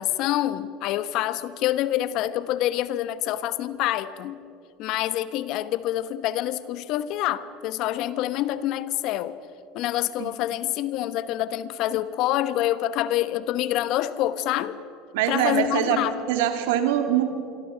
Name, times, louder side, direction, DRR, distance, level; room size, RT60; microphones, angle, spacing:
voice 1, 0.0-4.4 4.8-9.4 9.7-14.8 15.3-16.1, left 13 dB, 60° left, 1.0 m, -26 dB
voice 2, 15.1-17.2, right 10 dB, 75° right, 2.5 m, -23 dB
26.5 x 24.0 x 5.7 m
hypercardioid pair, 80°, 0 cm